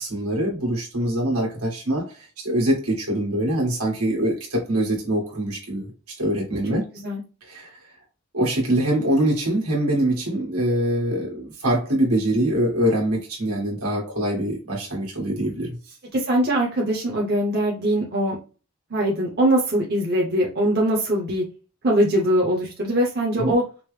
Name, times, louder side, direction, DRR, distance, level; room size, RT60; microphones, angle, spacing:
voice 1, 0.0-5.9 6.2-6.9 7.5-7.7 8.3-15.8 23.3-23.6, right 1 dB, 85° right, 1.8 m, -24 dB
voice 2, 16.1-18.4 18.9-21.4 21.8-23.6, right 1 dB, 45° right, 0.9 m, -22 dB
5.2 x 2.1 x 3.2 m
head